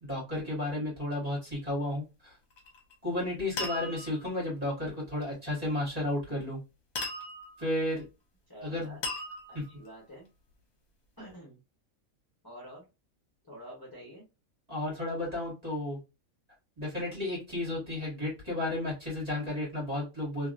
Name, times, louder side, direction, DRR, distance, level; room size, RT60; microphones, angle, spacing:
voice 1, 0.0-2.4 3.0-6.6 7.6-8.1 8.6-9.0 9.5-9.6 14.7-16.0 16.8-20.5, left 1 dB, 30° right, -6 dB, 1.9 m, -33 dB
sound 1, 2.5-2.9 3.6-4.3 6.9-7.7 9.0-9.9, left 2 dB, 55° left, 1.2 m, -37 dB
voice 2, 8.5-9.0 9.5-10.3 11.2-11.6 12.4-12.9 13.4-14.3, equal, 15° left, -6 dB, 1.1 m, -48 dB
2.8 x 2.8 x 2.4 m, 0.27 s
omnidirectional pair, 1.5 m